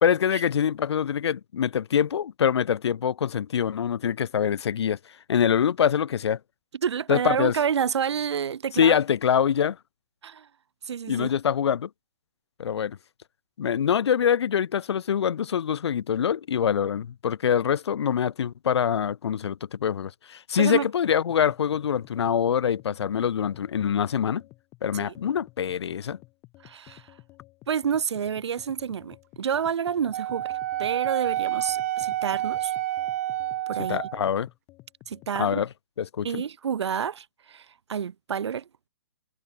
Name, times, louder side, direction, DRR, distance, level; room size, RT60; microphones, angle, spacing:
voice 1, 0.0-5.0 5.3-6.4 7.1-7.5 8.7-9.8 11.1-11.9 12.6-13.0 13.6-24.4 24.8-26.2 33.9-34.5 35.4-35.7 36.0-36.4, left 8 dB, 75° left, 0.7 m, -24 dB
voice 2, 6.8-9.0 10.2-10.5 10.9-11.3 20.6-20.9 24.9-25.1 26.6-27.0 27.7-30.5 30.8-32.7 33.7-34.0 35.1-35.6 36.2-38.6, right 7 dB, 90° right, 0.7 m, -29 dB
sound 1, 21.3-35.4, left 21 dB, 20° left, 2.7 m, -53 dB
Wind instrument woodwind instrument, 30.1-34.3, right 14 dB, 35° right, 0.4 m, -29 dB
hypercardioid pair, 160°, 14 cm